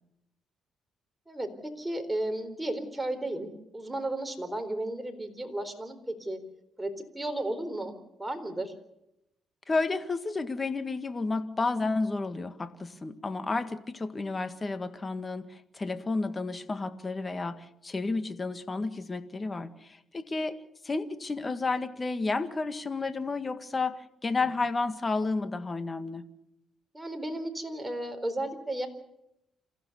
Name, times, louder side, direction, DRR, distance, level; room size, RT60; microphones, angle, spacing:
voice 1, 1.3-6.4 6.8-7.9 8.2-8.7 26.9-28.9, right 1 dB, 10° right, 7 dB, 4.0 m, -34 dB
voice 2, 9.7-26.3, left 3 dB, 25° left, 10 dB, 1.8 m, -31 dB
28.0 x 15.5 x 6.8 m, 0.82 s
cardioid pair, 90°, 0 cm